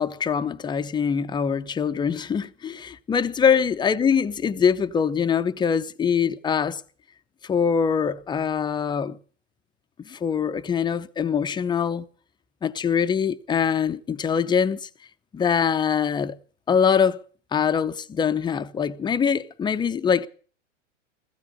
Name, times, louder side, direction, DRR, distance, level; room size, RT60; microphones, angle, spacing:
voice 1, 0.0-6.8 7.4-9.2 10.0-12.1 12.6-14.9 15.3-16.4 16.7-17.2 17.5-20.3, left 7 dB, 10° left, 0.7 m, -23 dB
15.5 x 15.5 x 5.2 m
hypercardioid pair, 115°, 37 cm